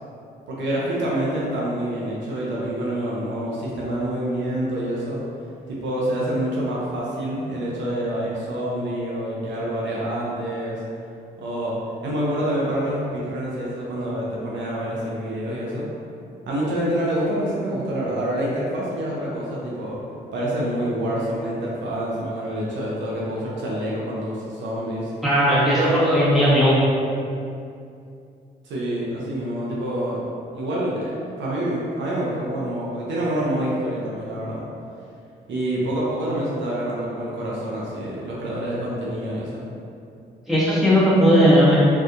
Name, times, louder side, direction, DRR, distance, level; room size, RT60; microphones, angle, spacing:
voice 1, 0.5-5.2 5.7-10.8 11.4-11.8 12.0-15.9 16.5-20.0 20.3-25.1 25.7-26.3 28.6-30.3 30.5-34.6 35.5-39.7, right 1 dB, 65° right, -6 dB, 0.5 m, -27 dB
voice 2, 25.2-25.8 26.0-26.8 40.5-41.8, equal, ahead, -9 dB, 1.1 m, -17 dB
2.6 x 2.3 x 2.4 m, 2.5 s
hypercardioid pair, 45°, 21 cm